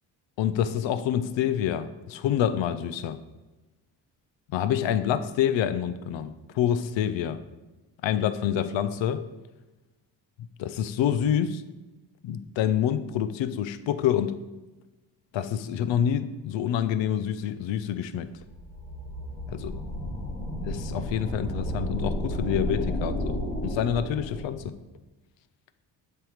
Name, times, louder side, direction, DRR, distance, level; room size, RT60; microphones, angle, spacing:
voice 1, 0.4-3.2 4.5-7.4 8.0-9.2 10.6-11.6 12.2-14.4 15.3-18.3 19.5-19.8 20.6-24.7, left 9 dB, 70° left, 13 dB, 0.6 m, -27 dB
sound 1, 18.3-24.8, equal, 15° left, 1.9 m, -32 dB
7.5 x 3.3 x 4.9 m, 1.1 s
supercardioid pair, 70°, 47 cm